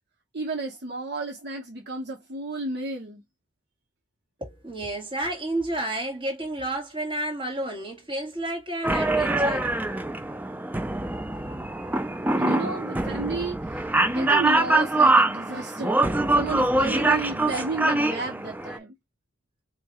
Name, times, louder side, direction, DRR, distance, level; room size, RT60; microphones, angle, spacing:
voice 1, 0.3-3.2 12.3-16.0 16.3-18.9, right 2 dB, 60° right, 1.0 m, -32 dB
voice 2, 4.4-9.7, right 1 dB, 25° right, 1.9 m, -31 dB
sound 1, 8.8-18.8, right 2 dB, 10° right, 0.4 m, -24 dB
2.9 x 2.8 x 4.3 m
head